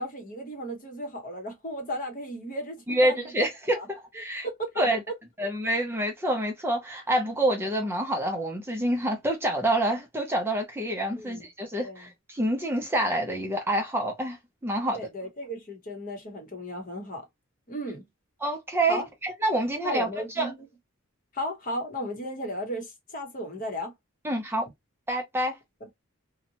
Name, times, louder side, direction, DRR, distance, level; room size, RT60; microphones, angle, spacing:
voice 1, 0.0-3.9 4.4-4.8 7.6-7.7 11.2-11.4 11.8-12.1 14.8-17.2 17.7-18.0 18.9-19.1 19.8-20.5 21.3-23.9, equal, 40° left, 0.8 m, -35 dB
voice 2, 2.9-4.5 4.8-5.0 5.4-14.4 14.6-15.0 18.4-20.1 20.4-20.5 24.2-24.7 25.1-25.6, right 1 dB, 10° right, 0.5 m, -27 dB
2.7 x 2.1 x 2.7 m
head